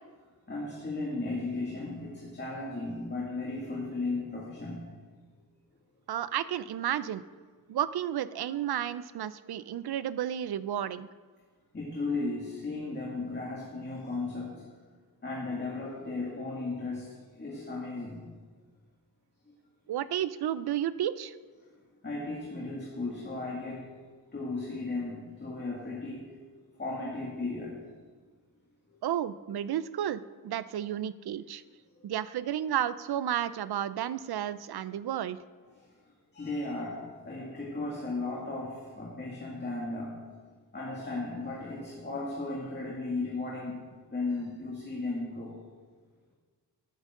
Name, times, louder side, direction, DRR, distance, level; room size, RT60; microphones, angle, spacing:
voice 1, 0.5-4.8 11.7-14.5 15.2-17.1 17.4-18.2 22.0-23.8 24.3-26.2 26.8-27.8 36.3-40.2 40.7-43.8 44.1-45.5, left 3 dB, 30° left, -4 dB, 2.2 m, -35 dB
voice 2, 6.1-7.2 7.7-11.1 19.9-21.3 29.0-31.6 32.0-35.4, right 10 dB, 80° right, 15 dB, 0.6 m, -32 dB
13.5 x 12.0 x 3.8 m, 1.5 s
wide cardioid pair, 115°, 38 cm